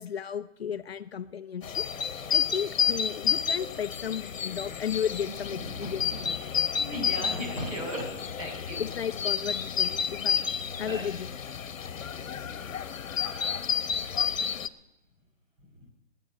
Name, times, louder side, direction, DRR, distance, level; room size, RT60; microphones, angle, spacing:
voice 1, 0.0-1.8 2.3-6.5 7.5-7.6 8.8-10.5 10.8-11.3, left 8 dB, 50° left, 10 dB, 0.7 m, -34 dB
sound 1, 1.6-14.7, left 7 dB, 85° left, 1.1 m, -30 dB
voice 2, 5.6-6.1 6.4-8.1 8.4-8.8 10.8-11.1, equal, 30° right, -1 dB, 5.3 m, -36 dB
19.5 x 10.0 x 6.4 m, 0.93 s
hypercardioid pair, 170°, 38 cm